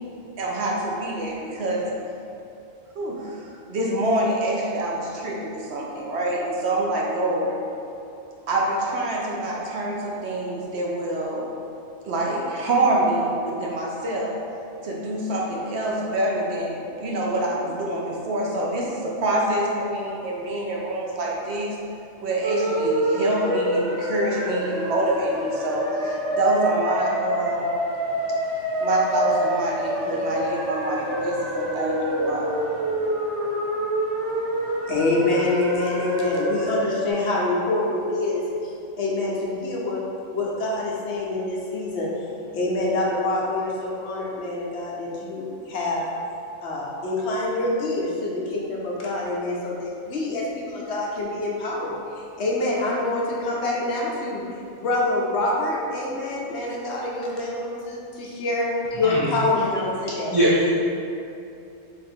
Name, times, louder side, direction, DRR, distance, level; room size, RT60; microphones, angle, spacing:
voice 1, 0.4-1.9 2.9-7.6 8.5-11.5 12.0-14.5 14.8-21.8 22.2-27.8 28.8-32.6, right 1 dB, 65° right, -2 dB, 0.8 m, -26 dB
sound 1, 22.4-37.1, equal, 50° right, 1.2 m, -27 dB
voice 2, 34.3-40.0 40.3-42.3 42.5-46.0 46.6-54.4 54.7-60.4, left 2 dB, 70° left, -4 dB, 0.9 m, -26 dB
voice 3, 59.0-59.4 60.1-60.7, right 1 dB, 35° right, -9 dB, 0.4 m, -22 dB
3.5 x 2.4 x 4.3 m, 2.6 s
omnidirectional pair, 1.2 m